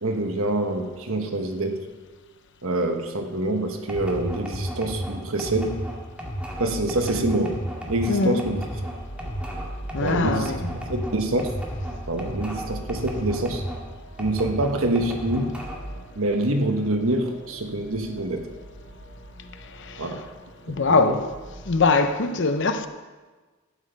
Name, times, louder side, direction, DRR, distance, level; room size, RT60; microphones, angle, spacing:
voice 1, 0.0-1.9 2.6-5.8 6.6-7.6 7.9-8.6 10.0-11.5 12.1-13.6 14.2-15.6 16.2-18.5 20.0-20.2 20.9-21.2, right 1 dB, 70° right, 1.2 m, -26 dB
sound 1, 3.9-13.8 14.2-16.0, equal, 5° right, 1.9 m, -33 dB
voice 2, 8.1-8.4 9.9-10.7 19.7-20.1 20.7-21.2 21.7-22.9, left 3 dB, 55° left, 0.8 m, -22 dB
sound 2, 9.0-21.9, right 1 dB, 75° left, 3.5 m, -43 dB
12.0 x 9.0 x 5.2 m
head